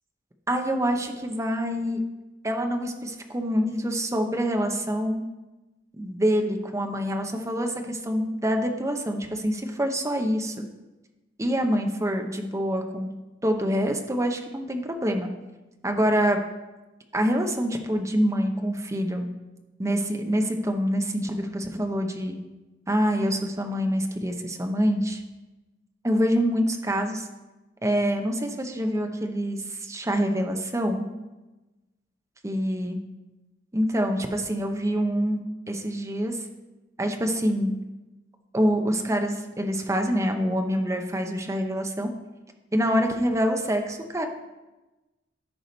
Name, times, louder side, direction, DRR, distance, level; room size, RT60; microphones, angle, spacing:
voice 1, 0.5-2.0 2.4-5.2 6.0-10.7 11.4-13.1 13.4-15.3 15.8-16.4 17.1-19.3 19.8-22.4 22.9-25.2 26.0-27.3 27.8-31.0 32.4-33.0 33.7-35.4 35.7-36.4 37.0-37.7 38.5-42.1 42.7-44.3, equal, 15° right, 4 dB, 0.9 m, -26 dB
13.5 x 4.9 x 4.0 m, 1.1 s
head